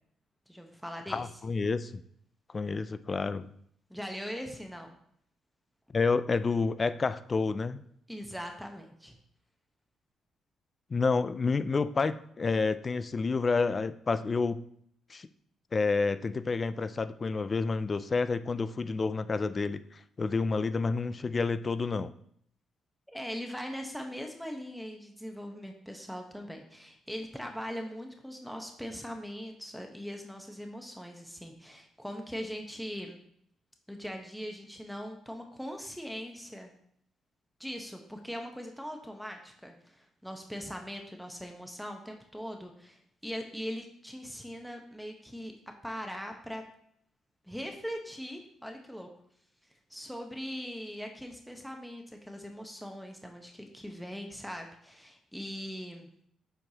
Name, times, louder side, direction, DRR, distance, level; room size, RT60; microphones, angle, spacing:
voice 1, 0.5-1.3 3.9-4.9 8.1-9.2 23.1-33.2 33.9-36.7 37.6-45.5 45.8-46.6 47.4-49.1 49.9-56.1, equal, ahead, 3 dB, 0.9 m, -41 dB
voice 2, 1.1-2.0 2.5-3.5 5.9-7.8 10.9-14.6 15.1-15.3 15.7-22.1, left 4 dB, 35° left, 14 dB, 0.4 m, -29 dB
7.7 x 4.6 x 2.8 m, 0.67 s
cardioid pair, 90°, 0 cm